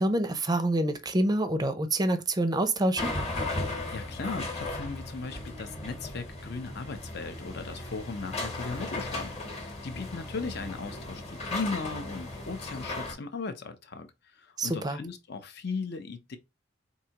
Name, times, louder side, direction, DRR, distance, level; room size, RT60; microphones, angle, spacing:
voice 1, 0.0-3.1 14.6-15.0, right 1 dB, 20° right, 0.5 m, -27 dB
sound 1, 3.0-13.1, left 2 dB, 35° left, 1.1 m, -36 dB
voice 2, 3.9-14.1 14.3-16.4, left 4 dB, 60° left, 0.7 m, -37 dB
4.7 x 2.7 x 2.9 m
head